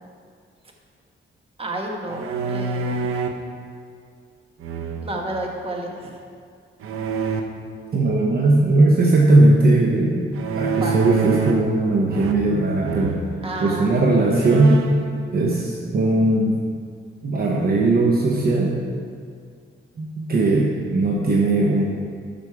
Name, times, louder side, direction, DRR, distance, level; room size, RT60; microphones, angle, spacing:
voice 1, 1.6-3.1 5.0-6.2 10.7-10.9 13.4-14.1, right 1 dB, 25° right, 0 dB, 1.3 m, -31 dB
sound 1, 2.1-3.4 4.6-5.3 6.8-7.4 10.3-11.7 12.1-12.6 12.8-13.3 13.9-14.0 14.3-15.1, right 5 dB, 85° right, 0.8 m, -26 dB
voice 2, 7.9-10.3 10.5-13.2 13.6-14.8 15.3-16.6 17.2-18.7 20.0-21.8, right 2 dB, 45° right, -1 dB, 0.9 m, -18 dB
12.0 x 5.2 x 4.8 m, 2.2 s
wide cardioid pair, 130°, 21 cm